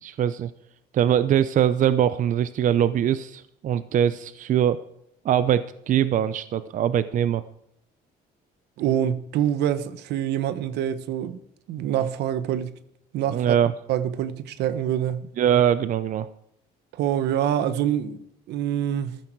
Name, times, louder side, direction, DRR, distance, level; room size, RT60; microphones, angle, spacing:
voice 1, 0.0-0.5 0.9-4.8 5.2-7.4 13.3-13.7 15.4-16.3, right 9 dB, 50° right, 0.7 m, -22 dB
voice 2, 8.8-11.4 11.7-12.8 13.1-13.6 13.9-15.3 17.0-19.2, right 10 dB, 80° right, 1.2 m, -26 dB
14.0 x 13.5 x 4.6 m
cardioid pair, 110°, 17 cm